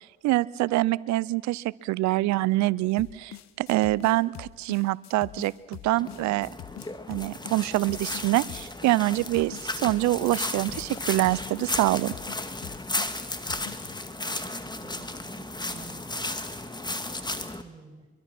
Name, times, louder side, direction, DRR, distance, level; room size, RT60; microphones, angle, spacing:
voice 1, 0.2-6.5 7.1-12.1, right 18 dB, 70° right, 22 dB, 0.6 m, -25 dB
sound 1, 3.0-14.0, left 13 dB, 65° left, 1.0 m, -44 dB
sound 2, 6.0-17.6, left 2 dB, 15° left, 1.9 m, -34 dB
voice 2, 14.2-16.2 16.6-18.1, right 4 dB, 15° right, -1 dB, 5.7 m, -49 dB
24.0 x 23.5 x 6.1 m, 1.2 s
hypercardioid pair, 50°, 29 cm